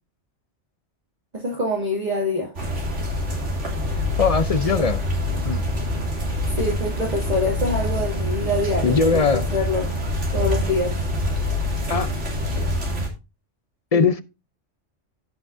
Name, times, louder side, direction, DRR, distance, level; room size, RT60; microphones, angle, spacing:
voice 1, 1.3-2.5 6.6-9.9 10.3-11.0 13.9-14.1, left 1 dB, 35° right, 2.4 m, -25 dB
sound 1, 2.5-13.1, left 1 dB, 70° right, 3.1 m, -25 dB
voice 2, 4.2-5.0 5.4-5.6 8.8-9.4 11.9-12.1 13.9-14.2, left 5 dB, 40° left, 0.6 m, -20 dB
16.0 x 5.9 x 2.6 m
omnidirectional pair, 1.3 m